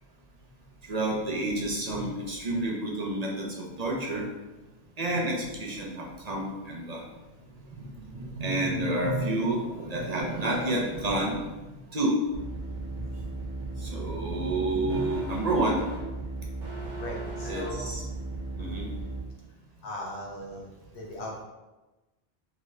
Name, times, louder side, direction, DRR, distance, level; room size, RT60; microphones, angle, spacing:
voice 1, 0.8-4.3 5.0-7.1 7.5-12.2 12.9-13.0 13.7-15.8 17.4-18.0 18.6-18.9, right 1 dB, 40° right, -2 dB, 0.7 m, -30 dB
sound 1, 12.3-19.2, right 2 dB, 80° right, 1.4 m, -36 dB
voice 2, 16.9-17.9 18.6-18.9 19.8-21.4, left 1 dB, 70° left, -2 dB, 1.2 m, -39 dB
3.6 x 3.2 x 3.2 m, 1.1 s
omnidirectional pair, 1.2 m